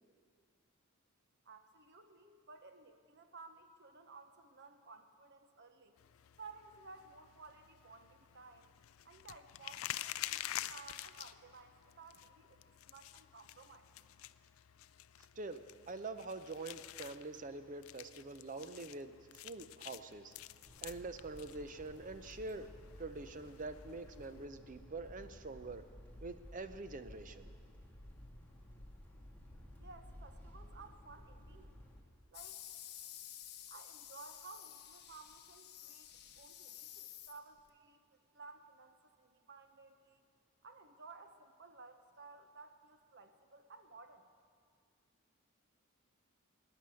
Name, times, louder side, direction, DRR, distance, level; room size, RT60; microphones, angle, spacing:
voice 1, 1.4-6.0 6.4-8.7 9.0-13.9 29.8-31.7 32.3-32.6 33.7-36.1 36.3-40.2 40.6-44.3, right 4 dB, 55° right, 8 dB, 1.1 m, -56 dB
sound 1, 6.0-24.5, left 13 dB, 70° left, 0.4 m, -49 dB
voice 2, 15.4-19.2 19.4-20.3 20.8-22.7 23.0-25.8 26.2-27.5, right 3 dB, 35° right, 11 dB, 0.6 m, -45 dB
sound 2, 20.7-32.0, left 1 dB, 10° left, 1.9 m, -55 dB
sound 3, 32.3-37.7, left 11 dB, 50° left, 1.1 m, -52 dB
18.5 x 10.0 x 7.7 m, 2.1 s
head